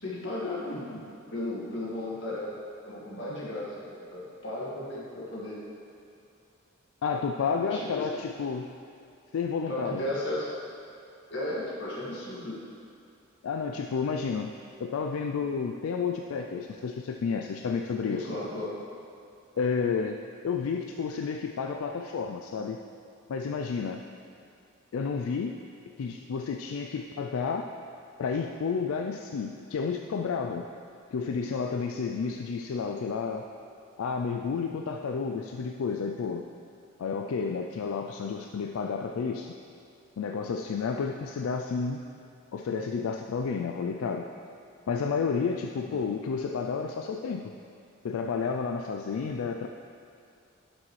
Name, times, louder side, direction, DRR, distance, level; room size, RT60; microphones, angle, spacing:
voice 1, 0.0-1.0 1.3-2.6 2.8-5.6 7.6-8.1 9.7-10.5 11.3-12.6 18.1-18.8 45.8-46.0, left 1 dB, 60° left, -6 dB, 2.0 m, -35 dB
voice 2, 7.0-8.7 9.3-10.1 13.4-14.5 14.8-18.3 19.6-20.2 20.4-22.8 23.3-24.0 24.9-25.5 26.0-27.7 28.2-30.7 31.1-33.4 34.0-36.4 37.0-39.5 40.2-42.0 42.5-44.3 44.9-47.5 48.0-49.7, left 5 dB, 85° left, 3 dB, 0.4 m, -31 dB
11.0 x 6.2 x 3.2 m, 2.5 s
head